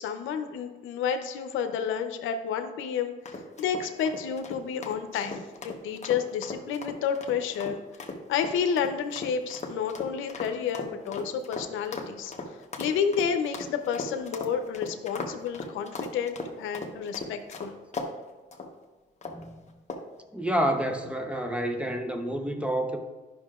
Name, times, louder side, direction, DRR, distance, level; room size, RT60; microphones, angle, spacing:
voice 1, 0.0-3.1 3.6-7.8 8.3-12.3 12.8-17.7, left 7 dB, 85° left, 7 dB, 0.7 m, -30 dB
sound 1, 3.3-18.1 18.5-18.7 19.2-19.5 19.9-20.2, left 3 dB, 35° left, 1.0 m, -38 dB
voice 2, 19.3-19.6 20.3-23.0, right 1 dB, 5° right, 4 dB, 0.7 m, -29 dB
10.5 x 6.0 x 2.4 m, 1.3 s
cardioid pair, 90°, 20 cm